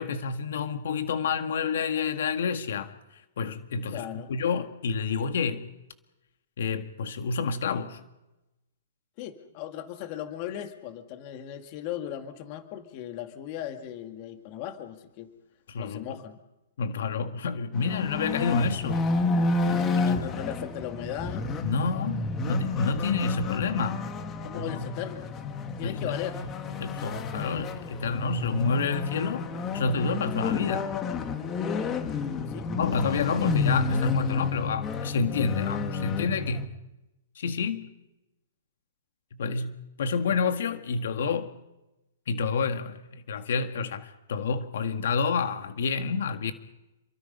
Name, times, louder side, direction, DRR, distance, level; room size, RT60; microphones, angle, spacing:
voice 1, 0.0-5.7 6.6-8.0 15.7-16.0 16.8-19.1 19.7-20.2 21.6-24.1 24.5-24.8 25.8-26.1 26.8-29.5 29.7-30.9 32.7-36.7 37.4-37.9 39.4-41.5 42.3-46.5, left 5 dB, 70° left, 1.8 m, -29 dB
voice 2, 3.9-4.3 9.2-15.3 15.7-16.4 19.7-21.5 24.4-25.3 25.8-26.4 32.3-32.7 39.4-39.6, left 11 dB, 35° left, 2.2 m, -37 dB
sound 1, 17.7-36.7, left 4 dB, 20° left, 1.8 m, -30 dB
28.0 x 23.5 x 5.5 m
hypercardioid pair, 160°, 0 cm